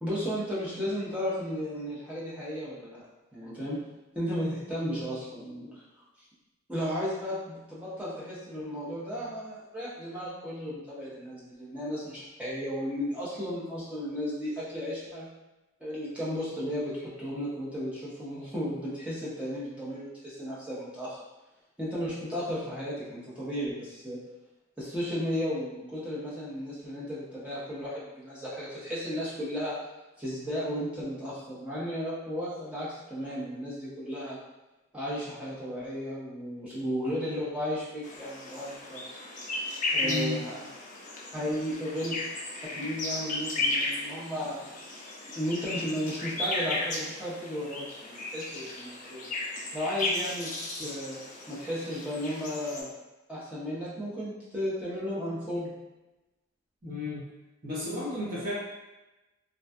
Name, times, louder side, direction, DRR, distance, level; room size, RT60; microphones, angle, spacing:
voice 1, 0.0-3.0 3.3-3.8 4.1-5.8 6.7-15.4 15.8-21.2 21.8-24.2 24.8-29.8 30.2-34.4 34.9-39.1 39.9-40.7 41.3-42.1 42.7-49.3 49.7-51.2 51.5-52.9 53.3-55.9, equal, 5° right, -9 dB, 0.6 m, -34 dB
sound 1, 38.0-52.8, left 2 dB, 35° left, 0.4 m, -35 dB
voice 2, 40.0-40.4 50.8-50.9 56.8-57.3 57.6-58.5, left 2 dB, 40° right, -8 dB, 0.9 m, -33 dB
2.6 x 2.2 x 2.2 m, 1.0 s
head